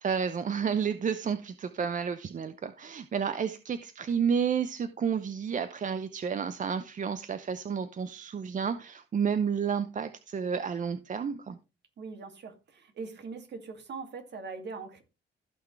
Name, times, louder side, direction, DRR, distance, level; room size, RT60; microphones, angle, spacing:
voice 1, 0.0-11.6, right 7 dB, 40° right, 0.7 m, -31 dB
voice 2, 12.0-15.0, right 4 dB, 60° right, 2.4 m, -41 dB
15.0 x 6.0 x 3.2 m
cardioid pair, 90°, 20 cm